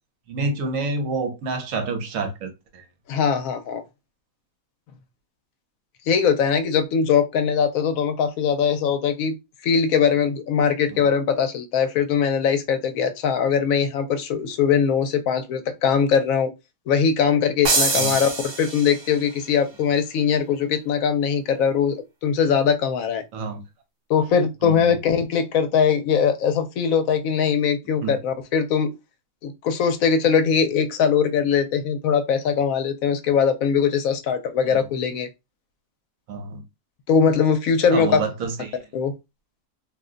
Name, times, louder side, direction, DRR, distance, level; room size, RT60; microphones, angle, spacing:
voice 1, 0.3-2.8 10.9-11.0 17.9-18.2 23.3-23.6 24.6-25.0 28.0-28.2 34.7-34.8 36.3-36.6 37.9-38.8, right 3 dB, 70° right, 1.1 m, -28 dB
voice 2, 3.1-3.8 6.1-9.4 9.6-16.5 16.9-23.2 24.1-28.9 29.4-35.3 37.1-38.2 38.9-39.1, left 6 dB, 75° left, 1.0 m, -21 dB
sound 1, 17.6-19.3, right 3 dB, 50° right, 0.9 m, -24 dB
2.6 x 2.1 x 3.7 m
omnidirectional pair, 1.5 m